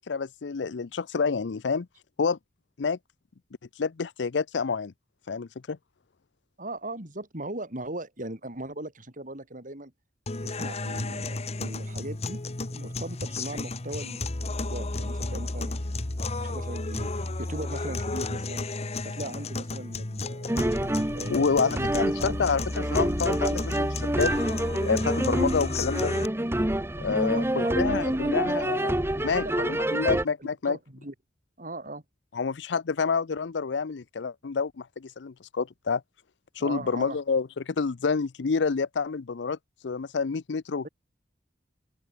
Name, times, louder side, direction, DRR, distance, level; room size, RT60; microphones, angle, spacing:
voice 1, 0.1-1.9 2.2-2.4 2.8-3.0 3.8-4.9 5.3-5.8 21.3-24.3 24.8-26.1 27.0-28.9 29.2-30.8 32.3-36.0 36.6-39.6 39.8-40.9, left 5 dB, 80° left, 0.6 m, -28 dB
voice 2, 6.6-9.9 10.4-12.4 12.6-14.3 14.6-20.5 21.1-22.4 27.0-28.8 29.2-30.1 30.4-31.1 31.6-32.0 36.6-37.2, right 2 dB, 50° right, 5.2 m, -39 dB
sound 1, 10.3-26.3, left 2 dB, 35° left, 1.2 m, -33 dB
sound 2, 20.5-30.3, right 1 dB, 15° right, 1.2 m, -27 dB
open air
head